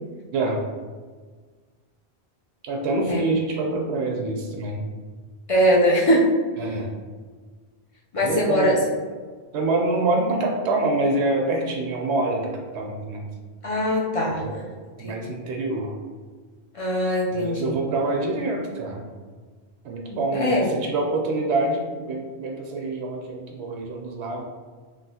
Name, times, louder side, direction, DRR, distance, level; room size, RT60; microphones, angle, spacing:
voice 1, 2.6-4.8 6.6-6.9 8.2-8.8 9.5-13.3 14.2-14.5 15.0-15.9 17.3-19.0 19.8-24.4, right 2 dB, 90° right, 1 dB, 0.9 m, -26 dB
voice 2, 5.5-6.3 8.1-8.8 13.6-14.6 15.0-15.2 16.7-17.7 20.3-20.7, equal, 50° left, -5 dB, 0.4 m, -21 dB
3.0 x 2.6 x 2.7 m, 1.5 s
omnidirectional pair, 1.1 m